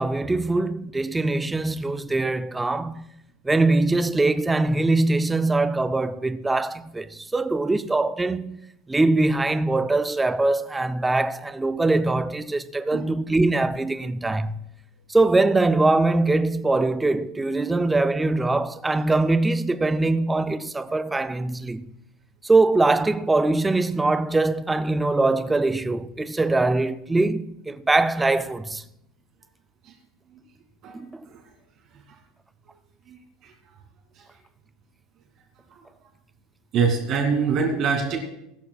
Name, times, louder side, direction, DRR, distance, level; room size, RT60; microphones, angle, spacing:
voice 1, 0.0-3.1 3.4-14.6 15.1-21.9 22.4-28.8 30.9-31.2, right 2 dB, 5° right, 0.4 m, -22 dB
voice 2, 36.7-38.2, right 5 dB, 35° right, 2.4 m, -24 dB
19.0 x 13.0 x 2.3 m
supercardioid pair, 170°, 0 cm